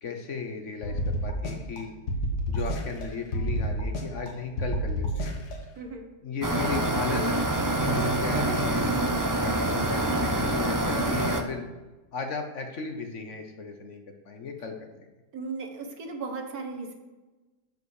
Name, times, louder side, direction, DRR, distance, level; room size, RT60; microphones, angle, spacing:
voice 1, 0.0-1.9 2.5-5.3 6.2-7.4 7.8-8.9 9.4-11.7 12.1-15.1, left 5 dB, 55° left, 5 dB, 1.1 m, -36 dB
sound 1, 0.8-1.8 2.1-3.0 3.3-4.3 4.6-5.5, equal, 80° left, 2.0 m, -29 dB
voice 2, 5.8-6.1 15.3-16.9, right 4 dB, 65° right, 4 dB, 1.8 m, -36 dB
sound 2, 6.4-11.4, right 1 dB, 30° right, 0.3 m, -26 dB
11.0 x 5.6 x 6.4 m, 1.2 s
omnidirectional pair, 1.7 m